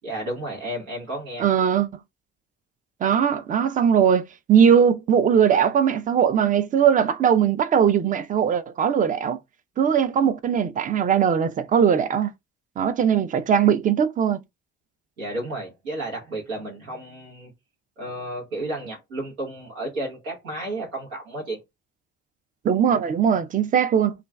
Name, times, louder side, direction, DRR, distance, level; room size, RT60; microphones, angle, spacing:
voice 1, 0.0-1.5 15.2-17.5 18.0-21.6, right 1 dB, 90° right, 0.9 m, -32 dB
voice 2, 1.4-1.9 3.0-9.4 9.8-12.3 12.8-14.4 22.6-24.1, right 8 dB, 20° right, 0.3 m, -20 dB
2.3 x 2.2 x 3.2 m
hypercardioid pair, 50°, 39 cm